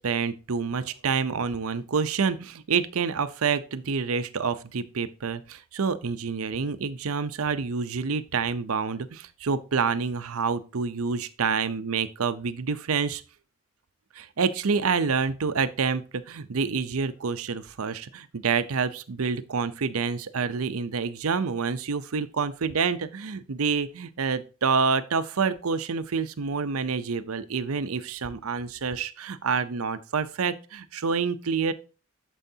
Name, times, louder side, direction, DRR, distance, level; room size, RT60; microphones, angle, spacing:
voice 1, 0.0-13.2 14.1-31.7, right 5 dB, 85° right, 12 dB, 0.6 m, -27 dB
9.0 x 6.9 x 2.8 m, 0.34 s
head